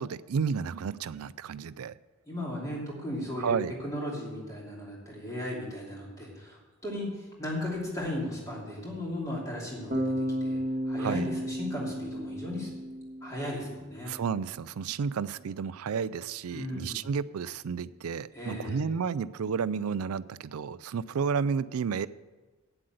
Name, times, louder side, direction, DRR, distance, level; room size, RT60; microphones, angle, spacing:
voice 1, 0.0-1.9 3.4-3.7 11.0-11.3 14.1-22.1, right 6 dB, 85° right, 18 dB, 0.4 m, -31 dB
voice 2, 2.3-3.6 3.8-10.6 10.9-12.7 13.2-14.2 16.5-17.0 18.3-18.9, left 1 dB, 15° left, -4 dB, 2.8 m, -36 dB
Bass guitar, 9.9-13.9, equal, 30° right, 1.5 m, -33 dB
9.0 x 7.7 x 7.9 m, 1.2 s
head